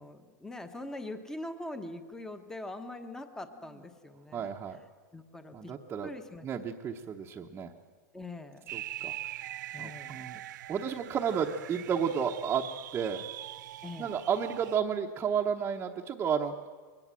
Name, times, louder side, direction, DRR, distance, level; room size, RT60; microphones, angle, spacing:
voice 1, 0.0-4.5 5.1-5.6 6.0-6.4 8.1-8.6 9.7-10.2 13.8-14.2, left 2 dB, 5° left, 8 dB, 1.1 m, -42 dB
voice 2, 4.3-4.8 5.5-6.1 6.4-7.7 8.7-9.1 9.8-10.4 10.7-12.7 12.9-13.3 14.0-16.7, right 7 dB, 20° right, -1 dB, 1.0 m, -32 dB
sound 1, 8.7-14.8, right 14 dB, 75° right, 0.5 m, -42 dB
22.5 x 19.5 x 7.6 m, 1.5 s
supercardioid pair, 150°, 10 cm